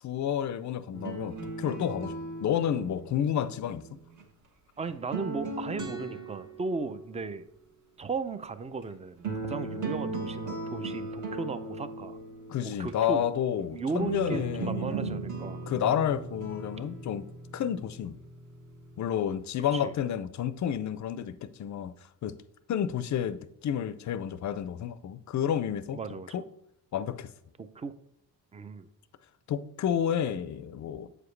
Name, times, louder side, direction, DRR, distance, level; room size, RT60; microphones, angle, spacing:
voice 1, 0.0-2.1 2.4-4.0 12.5-15.2 15.7-17.3 17.5-18.2 19.0-21.9 22.2-22.4 22.7-26.0 26.3-26.5 26.9-27.3 29.5-31.1, left 9 dB, 45° left, 0.5 m, -30 dB
sound 1, 0.9-4.2 4.9-7.1 8.8-8.9 9.2-12.9 14.0-19.0, right 3 dB, 50° right, 1.4 m, -38 dB
voice 2, 4.8-7.5 8.0-12.2 12.6-13.2 13.7-15.6 19.7-19.9 25.9-26.3 27.6-27.9 28.5-28.9, right 4 dB, 15° right, 0.4 m, -36 dB
7.8 x 4.9 x 3.2 m
cardioid pair, 100°, 40 cm